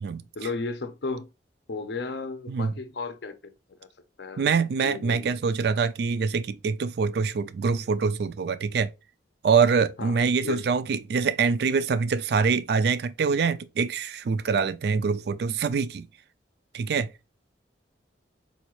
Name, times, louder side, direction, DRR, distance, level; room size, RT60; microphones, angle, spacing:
voice 1, 0.4-1.3 1.7-3.5 3.8-3.9 4.2-4.5 4.8-5.4 10.0-10.7, left 3 dB, 60° left, 0.5 m, -34 dB
voice 2, 4.4-8.9 9.4-16.1 16.7-17.1, right 5 dB, 55° right, 0.3 m, -25 dB
4.1 x 2.3 x 2.9 m
head